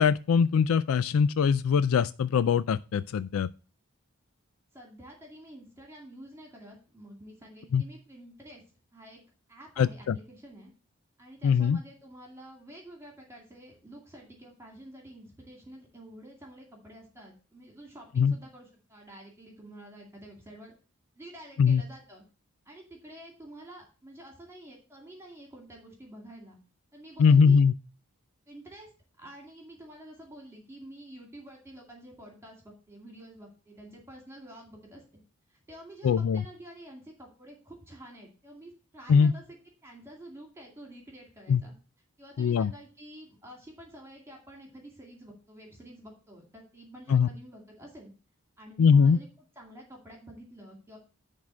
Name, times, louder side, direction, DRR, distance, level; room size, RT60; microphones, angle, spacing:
voice 1, 0.0-3.5 7.7-7.8 9.8-10.2 11.4-11.8 18.2-18.3 21.6-21.8 27.2-27.7 36.0-36.4 39.1-39.3 41.5-41.6 42.4-42.7 47.1-47.3 48.8-49.2, left 6 dB, 75° left, 0.3 m, -22 dB
voice 2, 4.7-8.6 8.9-9.2 9.5-10.7 11.2-20.7 21.2-22.2 22.7-26.6 26.9-27.6 28.5-28.9 29.2-35.2 35.5-41.7 42.2-48.1 48.6-49.3 49.6-51.0, right 1 dB, 10° right, 2.2 m, -49 dB
10.5 x 3.6 x 6.1 m
head